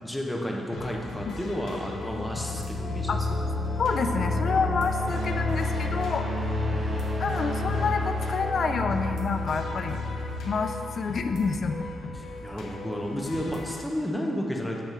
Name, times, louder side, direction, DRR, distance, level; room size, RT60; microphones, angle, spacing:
voice 1, 0.0-3.3 6.7-6.8 12.1-14.8, equal, 5° left, -1 dB, 0.7 m, -32 dB
sound 1, 0.7-13.8, left 3 dB, 80° left, 0.8 m, -39 dB
sound 2, 1.7-12.4, left 2 dB, 35° right, 1.0 m, -30 dB
voice 2, 3.8-6.3 7.2-10.0 10.4-11.9, left 4 dB, 40° left, 6 dB, 0.3 m, -28 dB
8.0 x 3.6 x 6.0 m, 2.4 s
wide cardioid pair, 175°, 0 cm